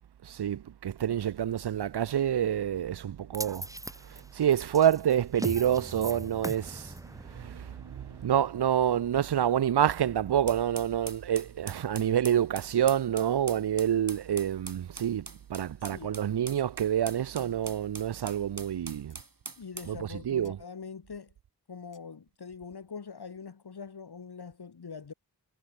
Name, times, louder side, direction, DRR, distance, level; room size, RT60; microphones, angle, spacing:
voice 1, 0.2-3.7 4.0-19.2 19.8-20.6, right 10 dB, 85° right, 0.5 m, -28 dB
sound 1, 3.3-9.6, right 1 dB, 10° right, 1.9 m, -41 dB
sound 2, 10.5-20.0, right 3 dB, 60° right, 3.8 m, -44 dB
voice 2, 15.8-16.2 19.6-21.3 21.7-25.1, left 5 dB, 75° left, 1.4 m, -43 dB
sound 3, 16.5-16.7 17.0-17.1 18.0-18.1 18.7-19.3 20.4-20.6 21.9-22.1, left 2 dB, 50° left, 7.0 m, -63 dB
wide cardioid pair, 50°, 39 cm